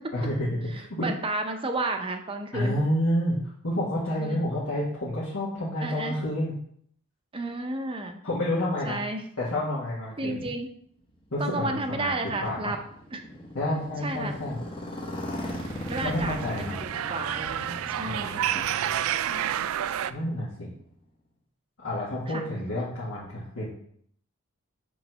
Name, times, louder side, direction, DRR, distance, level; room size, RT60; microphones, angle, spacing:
voice 1, 0.1-1.1 2.5-3.4 3.6-6.5 8.2-9.0 9.4-10.5 11.3-12.7 13.5-14.6 16.0-16.8 18.0-19.0 20.1-20.7 21.8-23.7, left 1 dB, 75° left, -9 dB, 1.8 m, -29 dB
voice 2, 1.0-2.8 4.2-4.4 5.8-6.2 7.3-8.2 8.8-9.2 10.2-10.7 11.4-12.8 13.1-13.2 14.0-14.4 15.3-18.6 19.3-19.7 22.3-22.5, right 2 dB, 25° right, 5 dB, 0.6 m, -32 dB
Motorcycle, 11.1-21.0, left 1 dB, 25° left, 0.8 m, -39 dB
sound 1, 15.4-20.1, right 10 dB, 75° right, 0.3 m, -30 dB
7.0 x 3.2 x 5.5 m, 0.65 s
head